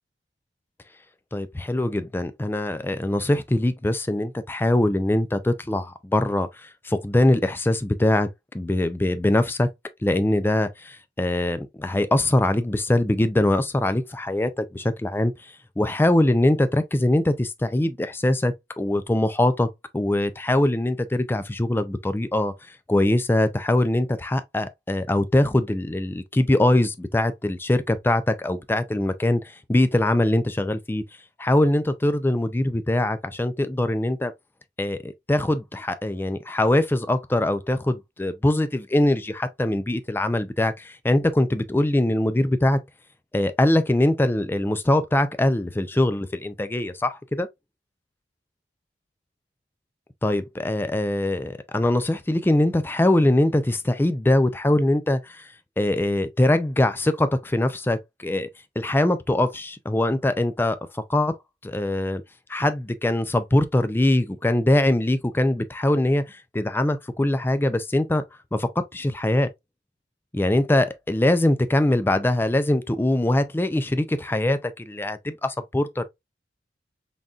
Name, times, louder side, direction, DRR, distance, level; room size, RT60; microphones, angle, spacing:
voice 1, 1.3-8.3 8.5-9.7 10.0-15.3 15.8-19.7 19.9-22.5 22.9-31.0 31.4-34.3 34.8-42.8 43.3-47.5 50.2-55.5 55.8-58.5 58.8-61.3 61.6-62.2 62.5-68.2 68.5-69.5 70.3-76.0, left 1 dB, 10° left, 0.4 m, -22 dB
4.0 x 3.6 x 2.3 m
head